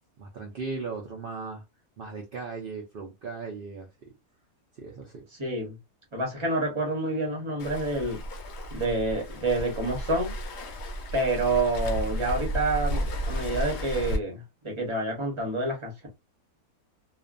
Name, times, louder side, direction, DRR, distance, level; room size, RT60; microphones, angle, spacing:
voice 1, 0.2-1.6 2.0-3.9 4.7-5.2, right 4 dB, 75° right, 0.5 m, -37 dB
voice 2, 5.4-5.7 6.1-8.2 8.7-10.3 11.1-16.1, right 2 dB, 25° right, 0.7 m, -28 dB
Waves surf, 7.6-14.2, equal, 60° left, 0.7 m, -33 dB
2.4 x 2.2 x 2.4 m
omnidirectional pair, 1.6 m